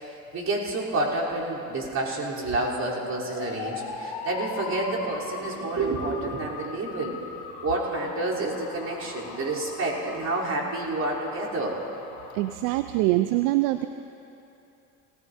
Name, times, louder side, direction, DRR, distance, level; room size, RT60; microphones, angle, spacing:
voice 1, 0.0-7.2 7.6-11.7, right 2 dB, 45° right, -5 dB, 3.5 m, -29 dB
sound 1, 3.3-12.6, left 6 dB, 70° left, 1.3 m, -39 dB
voice 2, 12.3-13.9, right 17 dB, 75° right, 10 dB, 0.5 m, -24 dB
19.0 x 15.0 x 2.7 m, 2.7 s
hypercardioid pair, 70°, 39 cm